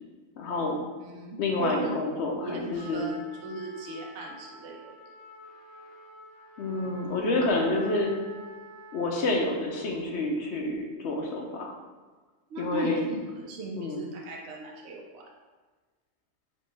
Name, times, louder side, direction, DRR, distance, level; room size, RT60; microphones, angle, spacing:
voice 1, 0.4-0.8 1.4-3.0 6.6-8.1 8.9-10.7 11.0-11.7 12.6-13.0 13.7-14.0, left 2 dB, 65° left, 0 dB, 0.8 m, -28 dB
voice 2, 1.0-2.0 2.4-4.8 12.5-15.3, right 2 dB, 70° right, -1 dB, 0.8 m, -37 dB
Trumpet, 2.7-9.3, equal, 90° right, 1.3 m, -48 dB
4.3 x 2.9 x 3.2 m, 1.4 s
omnidirectional pair, 1.3 m